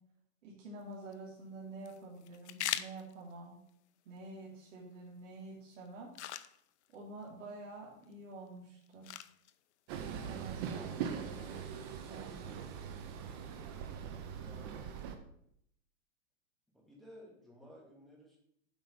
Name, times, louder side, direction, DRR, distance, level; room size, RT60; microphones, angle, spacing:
voice 1, 0.4-3.6 4.0-6.1 6.9-9.1 10.2-11.6 12.0-12.6, right 2 dB, 65° right, -4 dB, 2.8 m, -48 dB
sound 1, 0.8-13.8, left 12 dB, 55° left, 0.6 m, -48 dB
Train, 9.9-15.2, right 7 dB, 20° right, 0.5 m, -41 dB
voice 2, 14.4-14.8 16.7-18.4, equal, ahead, -4 dB, 2.2 m, -55 dB
7.9 x 5.0 x 7.2 m, 0.71 s
hypercardioid pair, 160°, 40 cm